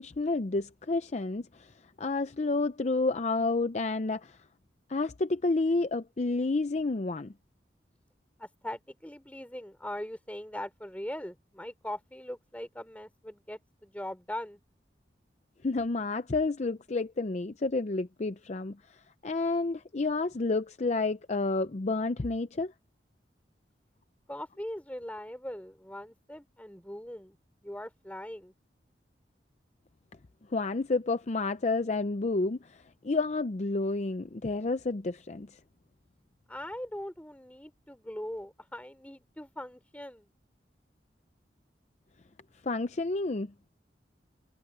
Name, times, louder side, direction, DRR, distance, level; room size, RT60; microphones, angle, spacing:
voice 1, 0.0-1.7 2.0-4.4 4.9-7.3 15.6-22.7 30.5-35.6 42.6-43.7, left 3 dB, 40° left, 0.5 m, -30 dB
voice 2, 8.4-14.6 24.3-27.4 27.6-28.5 36.5-40.3, left 1 dB, 10° left, 3.4 m, -41 dB
head